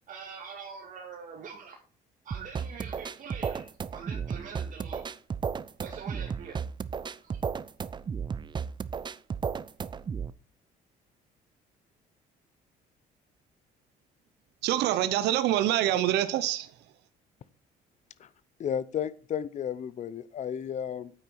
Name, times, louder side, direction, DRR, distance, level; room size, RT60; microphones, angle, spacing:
voice 1, 0.1-1.8 2.2-3.6 3.9-5.0 5.8-6.6 7.2-7.4, right 6 dB, 50° right, 2.0 m, -44 dB
sound 1, 2.3-10.3, right 6 dB, 25° right, 0.6 m, -34 dB
voice 2, 14.6-16.7, right 13 dB, 80° right, 0.8 m, -25 dB
voice 3, 18.6-21.1, left 8 dB, 45° left, 0.8 m, -33 dB
9.2 x 8.8 x 4.8 m
cardioid pair, 110°, 17 cm